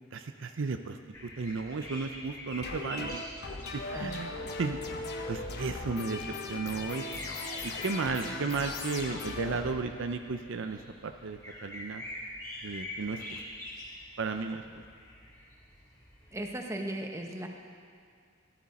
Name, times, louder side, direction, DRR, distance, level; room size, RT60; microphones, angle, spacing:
voice 1, 0.1-3.2 3.7-4.3 4.6-4.8 5.3-7.0 7.6-12.0 12.6-13.4 14.2-14.6, right 4 dB, 65° right, 7 dB, 0.5 m, -34 dB
sound 1, 1.1-16.5, left 1 dB, 20° left, 3.2 m, -46 dB
sound 2, 2.6-10.3, left 3 dB, 55° left, 1.0 m, -39 dB
voice 2, 16.3-17.5, right 1 dB, 15° right, 2 dB, 1.0 m, -36 dB
14.5 x 12.0 x 4.2 m, 2.2 s
head